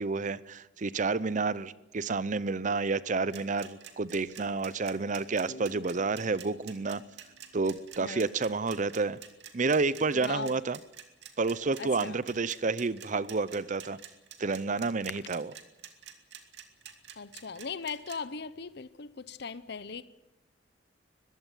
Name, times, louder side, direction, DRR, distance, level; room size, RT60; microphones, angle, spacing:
voice 1, 0.0-7.0 7.5-9.2 9.5-10.8 11.4-14.0 14.4-15.5, right 4 dB, 45° right, 0.7 m, -30 dB
sound 1, 3.3-18.2, right 9 dB, 70° right, 2.6 m, -47 dB
sound 2, 5.5-8.9, equal, 45° left, 1.9 m, -54 dB
voice 2, 10.1-10.6 11.8-12.2 15.1-15.2 17.2-20.0, left 5 dB, 65° left, 0.9 m, -39 dB
21.5 x 15.5 x 9.2 m
head